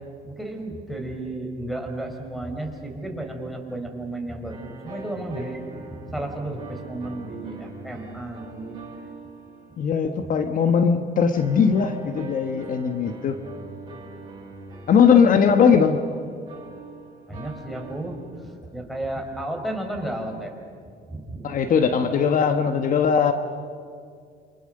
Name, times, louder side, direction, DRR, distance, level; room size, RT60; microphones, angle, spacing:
voice 1, 0.2-8.8 17.3-20.5 21.1-21.6, right 1 dB, ahead, 4 dB, 4.6 m, -33 dB
sound 1, 4.5-10.3 11.3-18.7, right 3 dB, 25° right, 8.0 m, -42 dB
voice 2, 9.8-13.4 14.9-16.0 21.4-23.3, left 6 dB, 55° left, 7 dB, 1.3 m, -19 dB
28.0 x 25.5 x 6.6 m, 2.2 s
cardioid pair, 110°, 17 cm